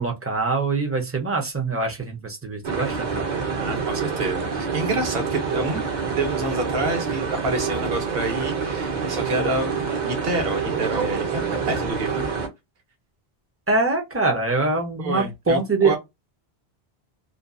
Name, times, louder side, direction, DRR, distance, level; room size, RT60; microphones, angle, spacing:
voice 1, 0.0-3.3 13.7-16.0, right 3 dB, 20° right, 0.4 m, -24 dB
sound 1, 2.6-12.5, right 5 dB, 50° right, 0.7 m, -27 dB
voice 2, 3.5-5.8 6.1-9.7 10.0-12.3 15.0-16.0, right 2 dB, 70° right, 1.0 m, -28 dB
2.5 x 2.3 x 2.4 m
omnidirectional pair, 1.0 m